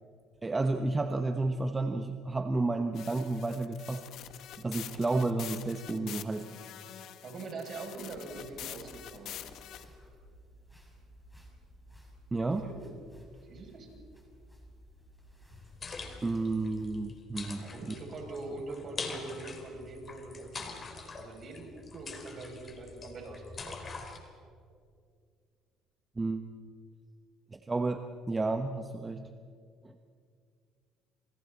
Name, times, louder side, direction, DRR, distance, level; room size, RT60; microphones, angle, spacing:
voice 1, 0.4-4.0 4.6-6.5 12.3-12.7 16.2-17.7 26.2-26.5 27.5-29.3, right 3 dB, 20° right, 7 dB, 1.1 m, -31 dB
sound 1, 2.9-9.8, left 11 dB, 65° left, 1.4 m, -45 dB
voice 2, 7.2-9.4 12.6-12.8 13.4-13.9 17.6-23.8, right 3 dB, 50° right, 0 dB, 7.2 m, -43 dB
sound 2, 8.3-17.2, equal, 5° left, 6.3 m, -56 dB
sound 3, 15.5-24.2, left 4 dB, 35° left, 3.8 m, -44 dB
29.5 x 28.5 x 4.3 m, 2.3 s
supercardioid pair, 85°, 0 cm